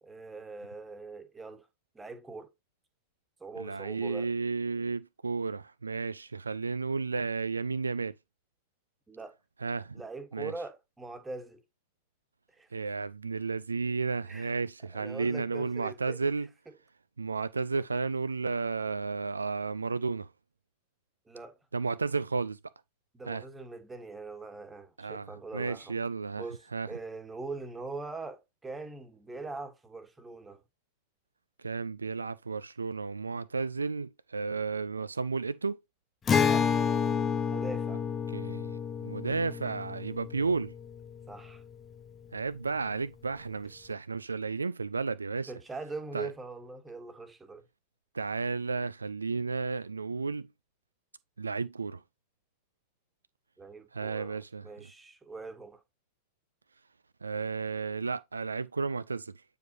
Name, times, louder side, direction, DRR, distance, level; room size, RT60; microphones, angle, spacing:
voice 1, 0.0-1.7 1.9-2.5 3.4-4.3 9.1-9.4 9.9-11.6 12.5-12.7 14.3-14.6 14.9-16.2 21.3-21.6 23.1-25.9 26.4-30.6 36.4-36.7 37.5-38.0 41.3-41.6 45.5-47.6 53.6-55.8, right 3 dB, 10° right, 1.5 m, -42 dB
voice 2, 3.6-8.2 9.6-10.0 10.3-10.5 12.7-16.5 17.2-20.3 21.7-22.6 23.3-23.4 25.0-26.4 26.7-26.9 31.6-35.8 38.3-40.7 42.3-45.5 46.1-46.3 48.1-50.5 51.4-52.0 53.9-54.7 57.2-59.4, right 4 dB, 75° right, 0.3 m, -33 dB
Acoustic guitar, 36.3-41.7, left 6 dB, 20° left, 0.8 m, -30 dB
9.0 x 5.2 x 2.6 m
figure-of-eight pair, 90°, 0 cm